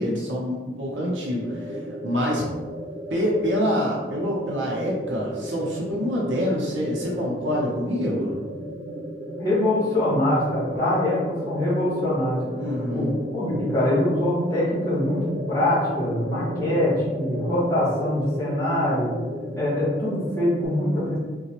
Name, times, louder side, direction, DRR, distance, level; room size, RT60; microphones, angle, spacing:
voice 1, 0.0-2.4 3.1-8.3 12.6-13.1, equal, 85° right, -4 dB, 0.7 m, -26 dB
sound 1, 0.9-20.7, equal, 50° right, 0.5 m, -33 dB
voice 2, 9.4-13.1 13.3-19.1 19.6-21.2, left 1 dB, 20° left, -9 dB, 1.4 m, -24 dB
4.0 x 2.2 x 2.9 m, 1.2 s
head